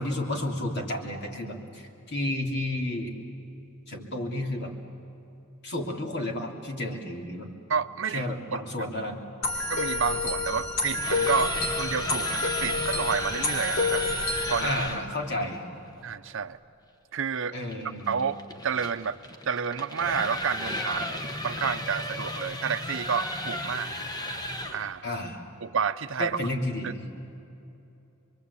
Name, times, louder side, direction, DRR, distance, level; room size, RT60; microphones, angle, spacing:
voice 1, 0.0-3.1 3.9-4.7 5.6-7.5 8.1-9.2 14.6-15.6 17.5-18.2 25.0-25.4 26.2-27.0, left 1 dB, 55° left, 1 dB, 3.1 m, -31 dB
voice 2, 7.7-8.3 8.5-8.6 9.7-14.0 14.5-14.7 16.0-16.6 17.1-17.6 17.8-19.2 19.5-23.9 24.7-25.0 25.6-26.4 26.8-26.9, right 6 dB, 60° right, 11 dB, 0.7 m, -30 dB
sound 1, 9.4-14.7, left 3 dB, 80° left, 3.0 m, -29 dB
sound 2, 10.8-15.1 17.7-24.9, left 1 dB, 20° left, 1.2 m, -34 dB
25.5 x 23.5 x 8.5 m, 2.8 s
head